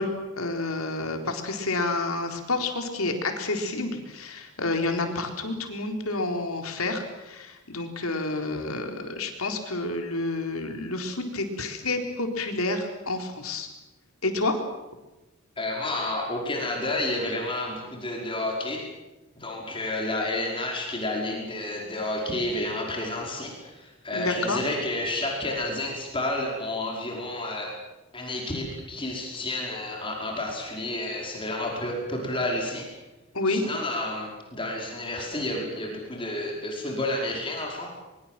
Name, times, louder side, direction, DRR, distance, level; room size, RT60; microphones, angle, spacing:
voice 1, 0.0-13.7 14.2-14.6 24.1-24.6 33.3-33.7, left 2 dB, 85° left, 4 dB, 4.1 m, -29 dB
voice 2, 15.6-18.8 19.4-27.7 28.1-32.9 33.5-37.9, left 1 dB, 25° left, 0 dB, 5.2 m, -30 dB
23.5 x 23.0 x 7.7 m, 1.0 s
head